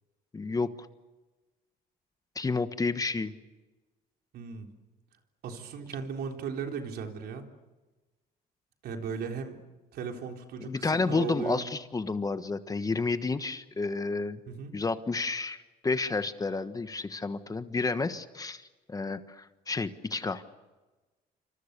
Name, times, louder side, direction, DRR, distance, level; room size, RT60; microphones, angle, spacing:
voice 1, 0.3-0.7 2.3-3.3 10.6-14.4 14.7-15.6 15.8-20.4, left 3 dB, 20° left, 11 dB, 1.3 m, -30 dB
voice 2, 4.3-4.7 5.4-7.4 8.8-9.6 9.9-11.7 14.5-14.7, right 6 dB, 70° right, 3 dB, 3.8 m, -36 dB
27.5 x 25.5 x 6.8 m, 1.2 s
cardioid pair, 110°, 17 cm